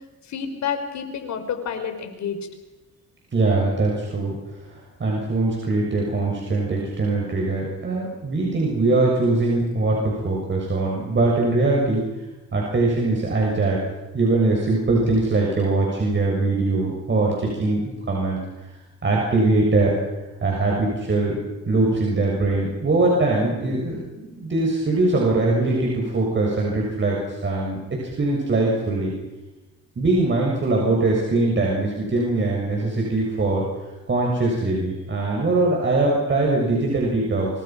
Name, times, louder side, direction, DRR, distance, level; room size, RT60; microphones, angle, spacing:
voice 1, 0.2-2.4, left 7 dB, 70° left, 7 dB, 4.5 m, -29 dB
voice 2, 3.3-4.4 5.0-12.1 12.5-13.8 14.1-18.4 19.0-19.9 20.4-21.4 21.7-27.8 28.2-29.1 30.0-33.6 34.1-37.5, right 2 dB, 40° right, -2 dB, 6.9 m, -22 dB
26.0 x 25.5 x 6.0 m, 1.1 s
cardioid pair, 90°, 30 cm